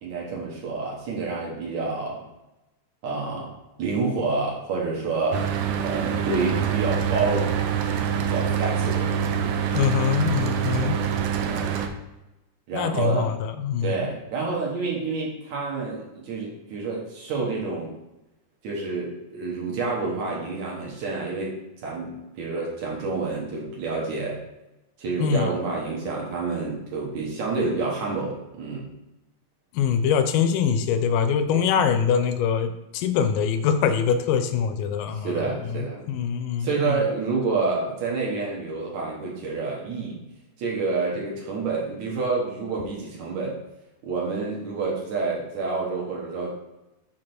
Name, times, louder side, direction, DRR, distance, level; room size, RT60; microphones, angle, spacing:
voice 1, 0.0-2.2 3.0-3.5 3.8-5.5 5.8-7.7 8.2-9.6 11.5-11.9 12.7-13.3 13.8-17.9 18.6-24.4 25.0-28.9 31.5-31.6 35.1-36.0 36.6-40.2 40.6-43.6 44.0-46.5, right 4 dB, 65° right, -3 dB, 2.4 m, -28 dB
Mechanical fan, 5.3-11.9, right 8 dB, 85° right, 1.7 m, -25 dB
voice 2, 9.7-11.0 12.7-14.1 25.2-25.5 29.7-35.3 35.7-37.0, left 7 dB, 80° left, 9 dB, 2.2 m, -24 dB
6.5 x 3.7 x 6.0 m, 0.98 s
omnidirectional pair, 4.0 m